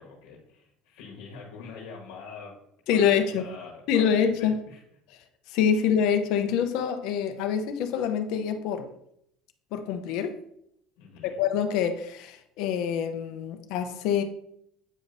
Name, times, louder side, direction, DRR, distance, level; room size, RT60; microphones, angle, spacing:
voice 1, 0.0-2.6 2.9-4.8 5.7-5.8 11.0-11.4, left 5 dB, 90° left, -1 dB, 1.2 m, -44 dB
voice 2, 2.9-3.5 3.9-4.5 5.5-8.9 9.7-10.4 11.4-14.2, left 8 dB, 70° left, 6 dB, 0.7 m, -25 dB
8.4 x 5.0 x 2.6 m, 0.74 s
cardioid pair, 135°, 0 cm